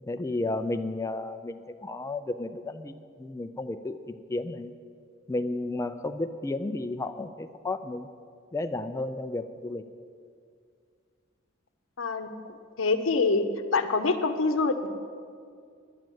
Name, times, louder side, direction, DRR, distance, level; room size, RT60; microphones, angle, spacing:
voice 1, 0.1-4.7 5.3-8.1 8.5-9.8, left 2 dB, 15° left, 8 dB, 0.3 m, -33 dB
voice 2, 12.0-13.5 13.7-14.9, left 3 dB, 90° left, 9 dB, 0.7 m, -26 dB
10.5 x 9.2 x 6.3 m, 2.2 s
head